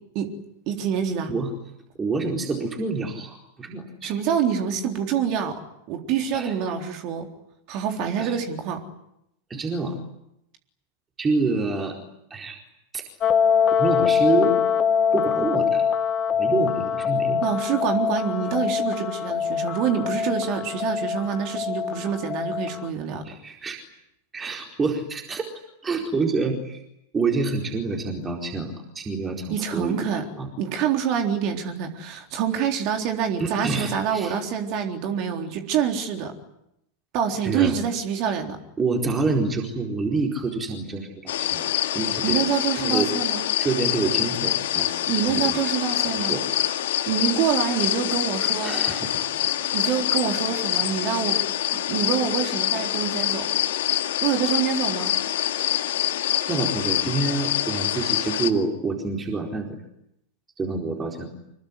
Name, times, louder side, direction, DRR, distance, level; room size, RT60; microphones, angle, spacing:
voice 1, 0.7-1.3 4.0-5.6 5.9-7.3 7.7-8.8 17.4-23.2 29.5-30.3 30.6-36.3 37.1-38.6 42.2-43.4 45.1-46.4 47.1-48.8 49.7-51.4 51.7-53.5 54.2-55.1, right 8 dB, 40° right, 4 dB, 3.8 m, -26 dB
voice 2, 2.0-4.1 6.3-6.5 8.2-8.3 9.5-10.0 11.2-12.0 12.3-12.6 12.9-13.0 13.8-14.5 15.1-15.8 16.4-17.4 23.2-23.8 24.3-25.5 25.8-26.8 27.1-30.0 30.4-30.5 33.4-34.3 37.4-37.7 38.8-42.4 42.8-43.1 43.6-44.9 45.3-45.6 46.3-46.4 48.6-49.4 56.5-59.8 60.6-61.3, right 3 dB, 15° right, 2 dB, 4.4 m, -27 dB
sound 1, 13.2-22.9, left 7 dB, 30° left, 2.1 m, -24 dB
sound 2, 41.3-58.5, left 12 dB, 55° left, 2.2 m, -25 dB
26.5 x 22.5 x 9.9 m, 0.80 s
figure-of-eight pair, 90°, 0 cm